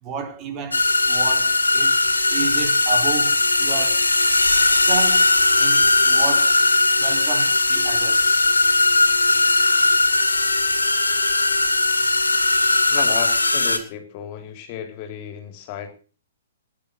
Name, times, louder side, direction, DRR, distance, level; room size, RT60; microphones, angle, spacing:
voice 1, 0.0-4.0 4.5-5.3 5.6-6.5 7.0-8.4, right 6 dB, 30° right, 4.4 m, -32 dB
sound 1, 0.7-13.8, left 2 dB, 85° left, 2.5 m, -18 dB
voice 2, 12.9-15.9, left 9 dB, 40° left, 3.8 m, -33 dB
19.0 x 10.5 x 6.5 m
figure-of-eight pair, 120°, 0 cm